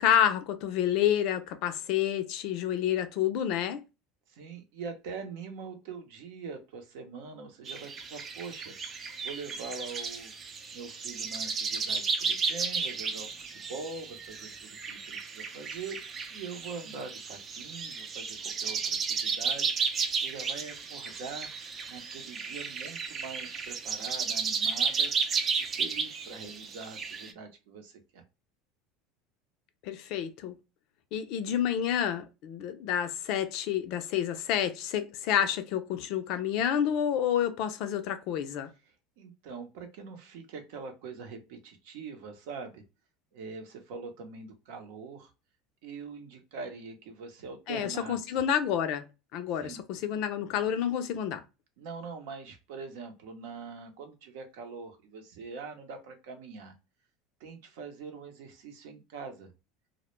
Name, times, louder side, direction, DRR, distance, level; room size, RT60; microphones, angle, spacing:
voice 1, 0.0-3.8 29.8-30.5 31.1-38.7 47.7-49.0 49.3-51.4, left 9 dB, 65° left, 0.4 m, -29 dB
voice 2, 4.3-10.3 10.7-19.7 20.2-21.5 21.9-25.1 25.6-28.2 38.9-42.8 43.3-45.3 45.8-48.4 49.6-49.8 51.8-56.7 57.4-59.5, right 4 dB, 75° right, 0.6 m, -43 dB
sound 1, 7.7-27.3, right 5 dB, 35° right, 0.4 m, -33 dB
2.1 x 2.1 x 3.0 m
supercardioid pair, 110°, 0 cm